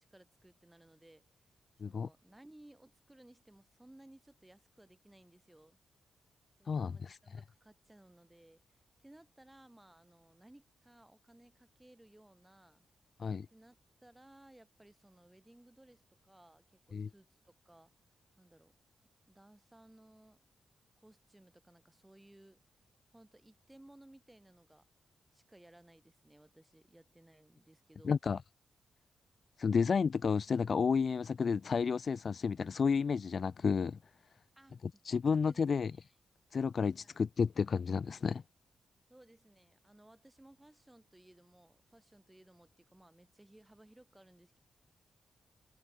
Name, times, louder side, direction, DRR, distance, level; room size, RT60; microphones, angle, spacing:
voice 1, 0.0-1.4 1.8-5.8 6.6-12.9 13.5-13.8 14.0-17.9 18.4-18.7 19.3-20.4 21.0-22.6 23.1-24.8 25.3-28.1 34.6-34.8 35.3-36.1 37.0-37.2 39.1-44.6, right 1 dB, 10° right, 7.7 m, -60 dB
voice 2, 6.7-7.2 13.2-13.5 16.9-17.1 28.0-28.4 29.6-34.0 35.0-35.9 36.5-38.4, left 5 dB, 55° left, 0.7 m, -31 dB
cardioid pair, 75°, 0 cm